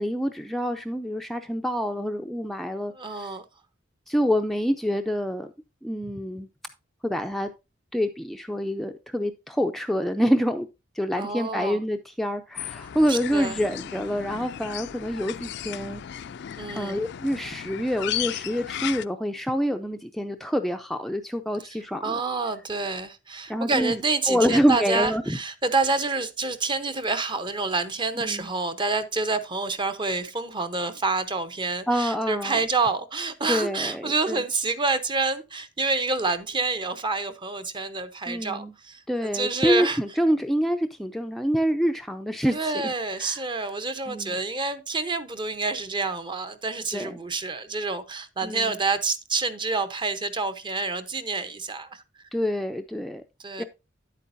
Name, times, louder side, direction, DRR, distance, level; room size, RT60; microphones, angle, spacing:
voice 1, 0.0-3.3 4.1-5.5 5.8-6.5 7.0-7.5 7.9-10.7 11.0-16.0 16.7-22.2 23.5-24.0 24.3-25.4 28.2-28.5 31.9-32.6 33.5-34.4 38.3-38.7 39.1-42.7 43.2-43.4 44.1-44.4 46.9-47.1 48.4-48.7 52.3-53.2 53.6-53.7, equal, ahead, 0.5 m, -26 dB
voice 2, 2.9-3.4 11.2-11.8 13.1-13.6 16.6-17.0 22.0-40.0 42.5-52.0 53.4-53.6, right 3 dB, 25° right, 0.8 m, -28 dB
sound 1, 12.6-19.1, left 10 dB, 65° left, 0.4 m, -35 dB
10.0 x 8.4 x 2.6 m
head